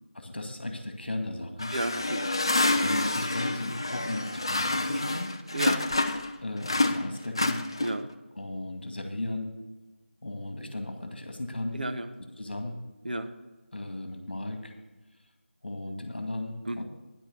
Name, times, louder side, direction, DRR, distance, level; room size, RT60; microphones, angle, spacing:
voice 1, 0.1-1.7 2.7-5.3 6.4-7.6 8.4-9.5 10.2-11.8 12.4-12.8 13.7-14.7 15.6-16.8, left 1 dB, 55° left, 5 dB, 2.0 m, -35 dB
sound 1, 1.6-6.3 6.6-8.1, left 2 dB, 25° left, 0.4 m, -28 dB
voice 2, 1.7-2.3 5.5-5.9 7.8-8.1 11.7-12.1 13.0-13.3 16.6-16.8, right 1 dB, 45° right, 7 dB, 0.9 m, -32 dB
10.0 x 8.9 x 6.8 m, 1.2 s
figure-of-eight pair, 170°, 7 cm